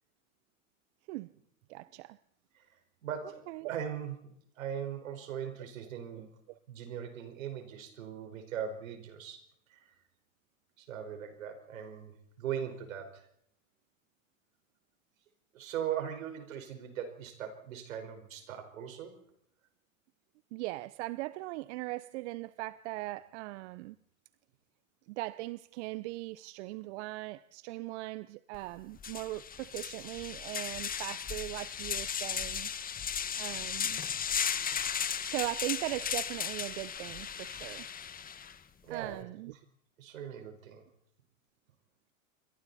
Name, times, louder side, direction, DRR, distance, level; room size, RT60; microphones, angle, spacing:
voice 1, 1.7-2.2 3.5-3.7 6.5-6.6 20.5-24.0 25.1-32.7 33.4-34.0 35.2-37.9 38.9-39.5, right 20 dB, 55° right, 0.8 m, -39 dB
voice 2, 3.0-4.1 4.5-6.3 6.7-9.4 9.7-9.9 10.8-13.2 15.5-19.2 38.8-39.3 40.0-40.8, right 9 dB, 75° right, 5.1 m, -39 dB
sound 1, 28.5-28.6 29.0-38.5, left 7 dB, 20° left, 1.4 m, -36 dB
28.0 x 24.0 x 4.2 m
hypercardioid pair, 100°, 40 cm